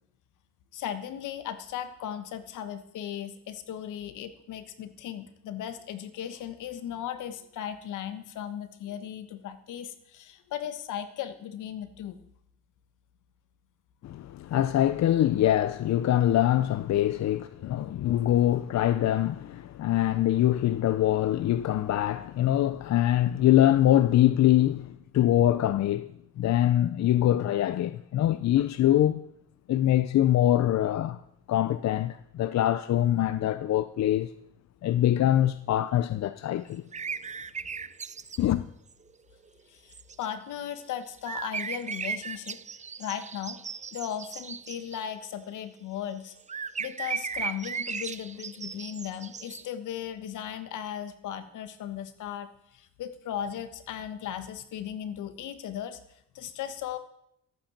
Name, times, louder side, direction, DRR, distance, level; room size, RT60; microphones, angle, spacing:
voice 1, 0.7-12.2 39.7-42.6 43.0-43.6 43.9-46.3 46.8-57.0, left 10 dB, 85° left, 1.5 m, -37 dB
voice 2, 14.0-26.1 26.4-29.2 29.7-31.2 31.5-34.3 34.8-36.8 38.4-38.6, left 12 dB, 60° left, 0.6 m, -24 dB
sound 1, 36.9-38.4 38.9-39.0 39.9-40.3 41.1-45.1 46.4-49.7, right 6 dB, 25° right, 0.5 m, -36 dB
14.5 x 9.2 x 7.3 m
cardioid pair, 90°, 30 cm